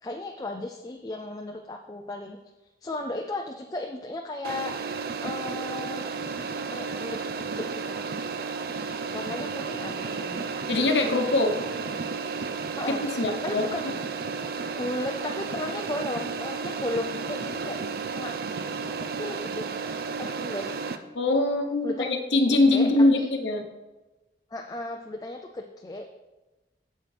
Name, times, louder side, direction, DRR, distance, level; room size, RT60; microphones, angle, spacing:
voice 1, 0.0-2.4 2.8-4.7 5.2-6.1 6.7-8.0 9.1-10.5 12.8-13.0 13.4-13.9 14.8-17.8 18.1-18.4 19.2-19.7 20.2-20.7 21.8-22.1 22.7-22.9 23.2-23.3 24.5-26.1, left 2 dB, 20° left, 3 dB, 0.4 m, -35 dB
sound 1, 4.4-21.0, right 4 dB, 55° right, 0.5 m, -33 dB
voice 2, 10.7-11.5 12.9-13.6 21.1-23.6, left 2 dB, 90° left, 4 dB, 0.9 m, -23 dB
8.8 x 7.5 x 3.4 m, 1.1 s
head